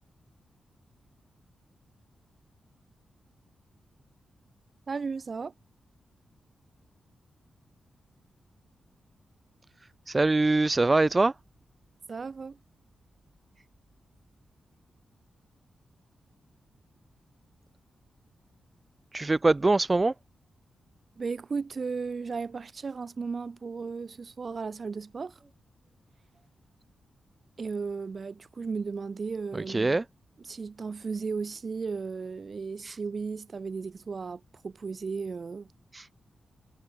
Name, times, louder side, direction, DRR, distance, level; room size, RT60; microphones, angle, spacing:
voice 1, 4.9-5.5 12.1-12.6 21.2-25.4 27.6-30.0 30.4-35.7, right 5 dB, 45° right, 2.5 m, -35 dB
voice 2, 10.1-11.3 19.1-20.1 29.5-30.0 32.8-32.9 35.9-36.1, right 2 dB, 25° right, 0.5 m, -23 dB
wide cardioid pair, 105°, 0 cm